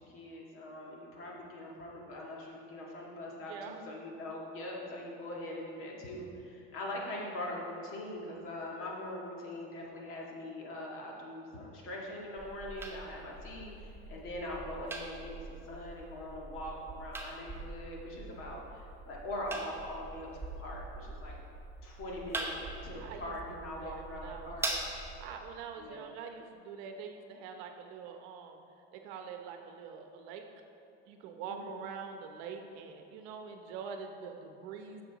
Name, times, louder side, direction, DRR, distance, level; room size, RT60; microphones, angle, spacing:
voice 1, 0.0-21.4 21.8-24.7 25.8-26.0 31.5-31.8, left 1 dB, 45° left, -2 dB, 1.9 m, -42 dB
voice 2, 3.5-3.8 23.0-23.3 23.6-24.9 25.2-28.6 28.9-30.4 31.1-35.0, right 6 dB, 65° right, 5 dB, 0.9 m, -45 dB
sound 1, 12.4-25.4, right 2 dB, 10° right, 0.9 m, -43 dB
9.0 x 6.8 x 4.0 m, 2.7 s
supercardioid pair, 125°, 30 cm